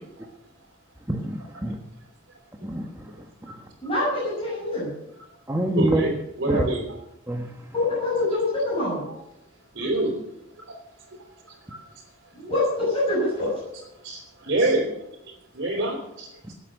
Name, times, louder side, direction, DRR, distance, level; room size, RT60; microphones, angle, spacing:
voice 1, 1.1-1.8 2.6-3.2 3.4-3.5 5.5-6.0 6.5-6.7 7.3-7.5, right 1 dB, 15° right, 2 dB, 1.2 m, -26 dB
voice 2, 3.8-4.9 7.7-9.1 12.3-13.5, left 2 dB, 30° left, -7 dB, 7.0 m, -25 dB
voice 3, 5.8-6.8 9.8-10.2 10.7-10.8 11.5-11.6 14.0-14.9 15.5-16.5, right 2 dB, 60° right, -2 dB, 3.7 m, -26 dB
18.0 x 8.4 x 6.5 m, 0.84 s
head